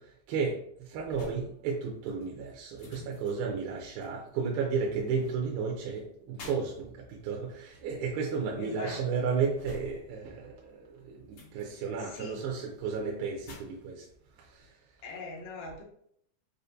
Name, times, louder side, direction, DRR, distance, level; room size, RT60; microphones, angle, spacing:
voice 1, 0.0-14.1 14.3-14.9, right 5 dB, 85° right, -1 dB, 2.5 m, -33 dB
sound 1, 1.0-10.4 10.7-14.7, left 3 dB, 55° left, 2.0 m, -52 dB
voice 2, 8.6-9.0 12.0-12.4 15.0-15.8, left 3 dB, 80° left, -1 dB, 1.7 m, -41 dB
6.5 x 2.5 x 2.5 m, 0.68 s
omnidirectional pair, 4.4 m